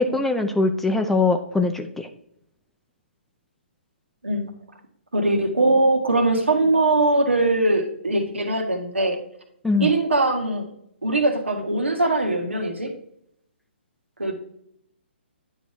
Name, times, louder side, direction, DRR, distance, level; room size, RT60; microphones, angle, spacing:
voice 1, 0.0-2.1 9.6-9.9, left 3 dB, 5° left, 6 dB, 0.5 m, -22 dB
voice 2, 5.1-9.2 9.8-10.7 11.0-12.9 14.2-14.3, right 2 dB, 90° right, 4 dB, 1.7 m, -21 dB
9.7 x 4.0 x 4.6 m, 0.72 s
hypercardioid pair, 135°, 6 cm